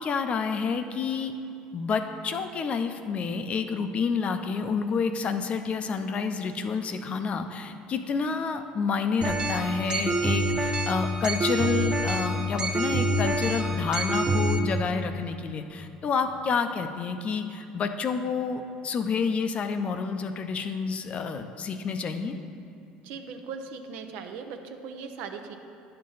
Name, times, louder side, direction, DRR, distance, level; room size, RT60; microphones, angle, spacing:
voice 1, 0.0-1.3 1.7-22.4, left 5 dB, 40° left, 8 dB, 0.6 m, -29 dB
sound 1, 9.2-14.6, right 1 dB, 30° right, 0.9 m, -27 dB
voice 2, 23.0-25.6, right 5 dB, 70° right, 6 dB, 0.7 m, -39 dB
10.0 x 6.6 x 4.0 m, 2.7 s
supercardioid pair, 90°, 3 cm